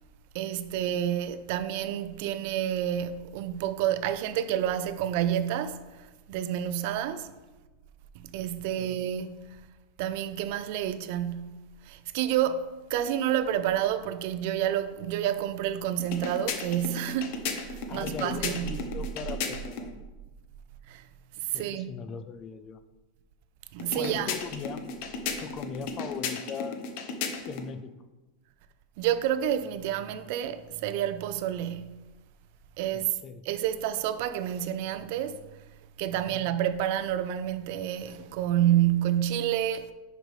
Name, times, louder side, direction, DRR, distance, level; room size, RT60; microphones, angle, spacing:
voice 1, 0.3-5.8 6.3-7.3 8.2-9.4 10.0-11.6 11.9-18.7 20.9-21.0 21.5-22.0 23.7-24.3 29.0-32.0 32.8-33.1 33.4-35.4 36.0-39.9, right 11 dB, 50° right, 0.5 m, -29 dB
voice 2, 8.6-9.0 17.9-20.1 21.5-22.8 23.9-24.8 25.4-26.8 27.4-27.9 32.9-33.4 36.1-36.5, left 6 dB, 25° left, 0.4 m, -39 dB
sound 1, 16.0-19.9 23.8-27.7, left 5 dB, 50° left, 0.8 m, -35 dB
10.0 x 5.2 x 3.2 m
supercardioid pair, 160°, 0 cm